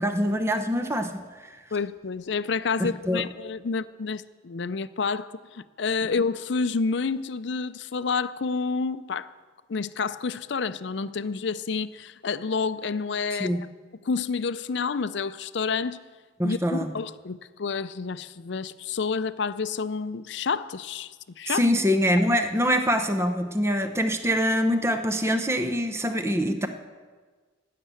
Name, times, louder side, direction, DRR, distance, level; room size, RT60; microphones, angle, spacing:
voice 1, 0.0-1.6 2.8-3.2 13.4-13.6 16.4-16.9 21.5-26.7, equal, 15° right, 7 dB, 0.7 m, -24 dB
voice 2, 1.7-9.3 9.7-13.6 14.1-16.0 16.4-21.7, left 5 dB, 65° left, 14 dB, 0.5 m, -29 dB
16.5 x 6.8 x 8.9 m, 1.4 s
head